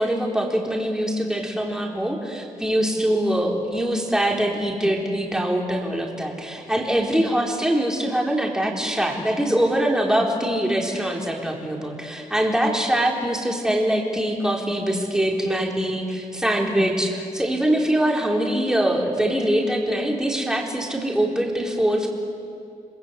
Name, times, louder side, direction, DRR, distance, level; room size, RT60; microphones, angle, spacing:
voice 1, 0.0-22.1, right 1 dB, 5° right, 0 dB, 4.1 m, -23 dB
29.0 x 20.5 x 8.3 m, 2.5 s
cardioid pair, 105°, 14 cm